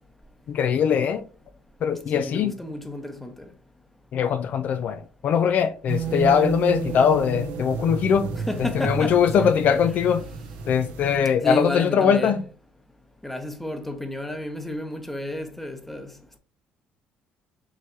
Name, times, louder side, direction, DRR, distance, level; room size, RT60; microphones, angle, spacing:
voice 1, 0.5-1.2 1.8-2.5 4.1-4.9 5.2-8.2 8.8-10.2 10.7-12.4, left 7 dB, 60° left, 0.3 m, -21 dB
voice 2, 2.1-3.3 8.4-9.6 11.4-12.4 13.2-16.1, left 1 dB, 5° left, 0.8 m, -31 dB
sound 1, 5.9-11.2, right 4 dB, 85° right, 0.6 m, -31 dB
4.7 x 3.1 x 2.7 m
cardioid pair, 90°, 3 cm